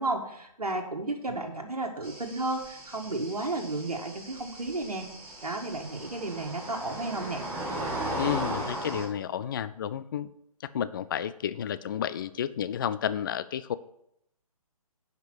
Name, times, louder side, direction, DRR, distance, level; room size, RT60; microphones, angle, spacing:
voice 1, 0.0-5.1 5.4-7.4, right 2 dB, 80° right, 1 dB, 1.7 m, -33 dB
sound 1, 2.0-9.0, right 1 dB, 10° right, 4.4 m, -37 dB
voice 2, 8.2-10.3 10.6-13.8, left 9 dB, 35° left, 15 dB, 0.4 m, -31 dB
10.5 x 5.2 x 6.1 m, 0.76 s
figure-of-eight pair, 140°, 19 cm